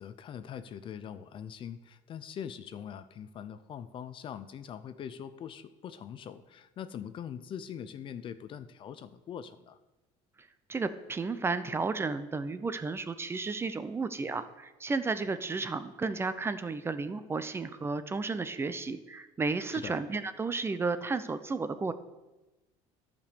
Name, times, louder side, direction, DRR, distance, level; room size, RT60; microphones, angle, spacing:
voice 1, 0.0-9.8 19.7-20.0, left 8 dB, 40° left, 13 dB, 0.6 m, -42 dB
voice 2, 10.7-21.9, right 4 dB, 20° right, 12 dB, 0.5 m, -33 dB
11.0 x 5.2 x 6.8 m, 1.1 s
cardioid pair, 130°, 13 cm